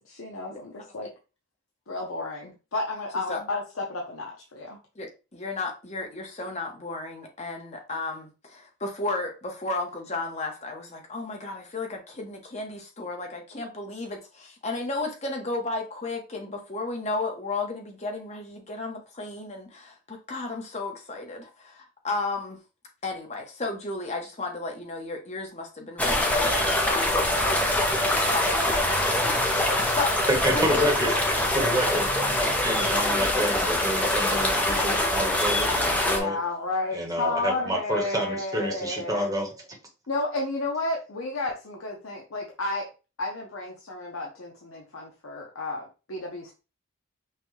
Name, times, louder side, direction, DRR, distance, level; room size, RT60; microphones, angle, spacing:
voice 1, 0.1-1.1 1.9-4.8 27.3-28.1 35.9-39.3 40.1-42.9 43.2-46.5, left 2 dB, 80° left, 0.8 m, -32 dB
voice 2, 5.0-22.6 23.0-27.8 28.2-29.4 30.0-30.2 30.5-30.9, left 3 dB, 30° left, 1.0 m, -33 dB
sound 1, 26.0-36.2, left 1 dB, 5° left, 0.6 m, -24 dB
voice 3, 30.3-36.4 36.9-39.6, right 1 dB, 15° right, 1.1 m, -29 dB
5.7 x 2.3 x 3.2 m
head